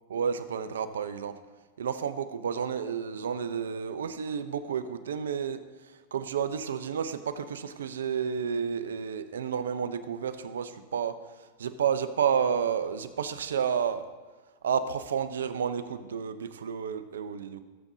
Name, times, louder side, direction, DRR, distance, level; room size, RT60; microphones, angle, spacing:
voice 1, 0.1-1.4 1.8-14.1 14.6-17.6, right 7 dB, 90° right, 11 dB, 0.7 m, -31 dB
16.5 x 7.4 x 2.7 m, 1.3 s
hypercardioid pair, 120°, 0 cm